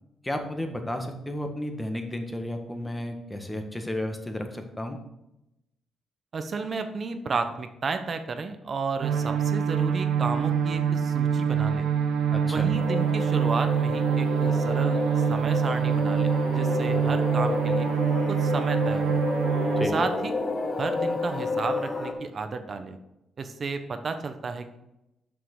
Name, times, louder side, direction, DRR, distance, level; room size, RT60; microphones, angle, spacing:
voice 1, 0.2-5.0 12.3-12.7 19.8-20.0, left 1 dB, 10° left, 4 dB, 1.6 m, -33 dB
voice 2, 6.3-11.9 12.4-17.9 18.3-19.1 19.8-20.3 20.8-23.0 23.4-24.8, right 4 dB, 50° right, 8 dB, 1.1 m, -32 dB
sound 1, 9.0-19.9, right 7 dB, 80° right, 0.8 m, -25 dB
sound 2, 12.7-22.1, left 3 dB, 40° left, 1.4 m, -30 dB
8.1 x 5.9 x 6.1 m, 0.89 s
cardioid pair, 70°, 0 cm